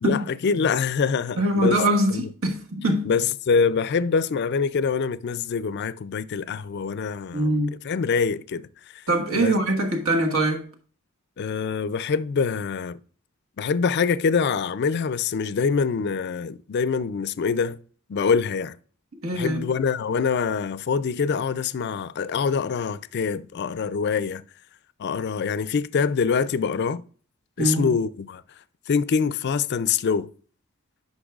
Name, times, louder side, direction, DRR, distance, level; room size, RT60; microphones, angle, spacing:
voice 1, 0.0-1.8 2.1-2.3 3.0-8.7 8.9-9.0 9.3-9.5 11.4-13.0 13.6-17.8 18.1-18.7 19.3-24.4 25.0-27.0 27.6-28.4 28.9-30.3, left 5 dB, 50° left, 0.4 m, -25 dB
voice 2, 1.4-3.1 7.3-7.7 9.1-10.6 19.2-19.6 27.6-27.9, right 1 dB, 70° right, 1.4 m, -23 dB
10.0 x 5.3 x 2.4 m
head